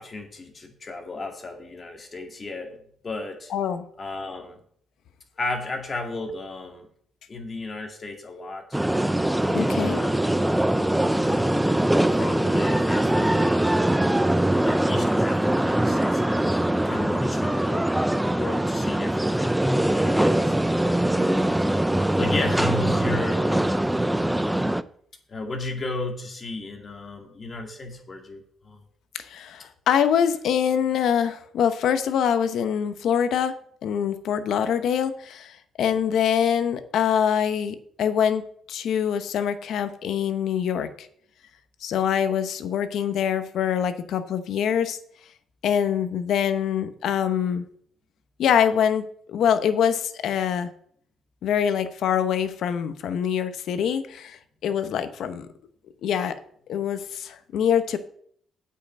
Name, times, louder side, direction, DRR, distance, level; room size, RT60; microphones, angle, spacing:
voice 1, 0.0-2.7 3.0-3.5 4.0-4.6 5.4-6.9 7.3-8.8 9.4-10.2 11.2-11.7 12.1-13.7 14.6-17.9 18.2-20.5 21.2-21.7 22.2-24.0 25.3-28.8 35.9-36.2, left 2 dB, 35° left, 2 dB, 2.2 m, -34 dB
voice 2, 3.5-3.8 9.5-10.0 29.1-33.5 33.8-38.4 38.7-41.1 41.8-45.0 45.6-47.6 48.4-50.7 51.4-55.5 56.0-56.4 56.7-58.0, left 8 dB, 75° left, 11 dB, 0.8 m, -24 dB
sound 1, 8.7-24.8, right 1 dB, 5° right, 0.4 m, -22 dB
8.4 x 5.6 x 7.5 m, 0.63 s
cardioid pair, 100°, 0 cm